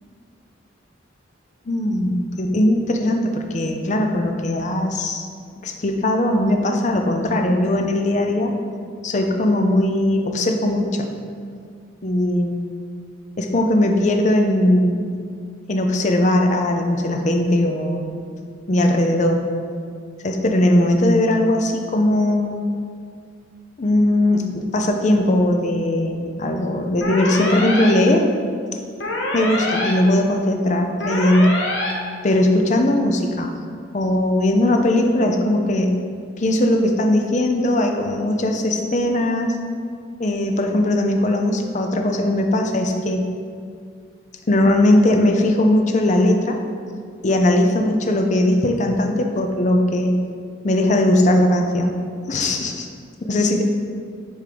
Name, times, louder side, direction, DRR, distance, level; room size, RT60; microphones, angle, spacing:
voice 1, 1.7-5.3 5.6-8.5 9.0-11.1 12.0-12.5 13.4-15.0 15.7-18.1 18.7-19.4 20.2-22.6 23.8-28.3 29.3-31.6 32.2-33.5 33.9-36.0 36.4-39.6 40.2-43.3 44.5-46.6 47.2-50.2 50.6-52.0 52.3-52.9 53.3-53.6, left 1 dB, 40° left, 4 dB, 0.5 m, -19 dB
sound 1, 27.0-27.9 29.0-29.9 31.0-31.9, left 2 dB, 70° left, 1.0 m, -24 dB
6.5 x 3.6 x 5.1 m, 2.2 s
head